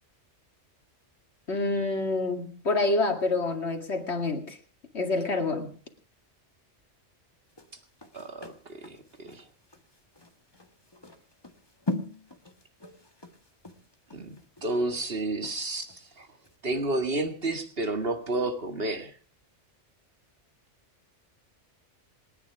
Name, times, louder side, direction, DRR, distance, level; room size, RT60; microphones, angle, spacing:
voice 1, 1.5-4.6 4.9-5.7, left 2 dB, 65° left, 4 dB, 2.6 m, -27 dB
sound 1, 7.5-16.0 16.4-16.6, left 2 dB, 20° left, 1.8 m, -40 dB
voice 2, 8.1-9.4 14.1-14.3 14.6-16.3 16.6-19.1, right 2 dB, 55° right, 7 dB, 2.2 m, -31 dB
28.0 x 9.8 x 4.8 m, 0.40 s
omnidirectional pair, 1.2 m